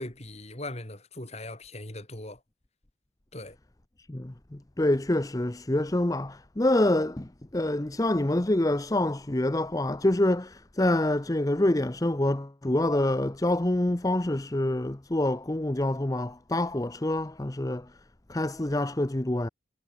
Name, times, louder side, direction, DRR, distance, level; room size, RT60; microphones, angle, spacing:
voice 1, 0.0-2.4 3.3-3.6, left 1 dB, 35° left, 4.0 m, -39 dB
voice 2, 4.0-18.0 18.3-19.5, left 1 dB, 20° left, 0.7 m, -26 dB
head